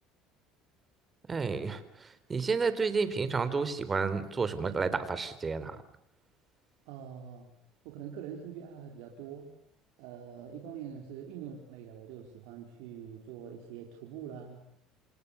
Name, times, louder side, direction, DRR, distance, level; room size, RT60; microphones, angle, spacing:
voice 1, 1.3-5.8, right 4 dB, 25° right, 12 dB, 3.8 m, -31 dB
voice 2, 6.9-7.5 7.8-9.5 10.0-14.6, right 8 dB, 80° right, 0 dB, 4.8 m, -44 dB
28.0 x 28.0 x 7.1 m, 0.66 s
supercardioid pair, 105°, 0 cm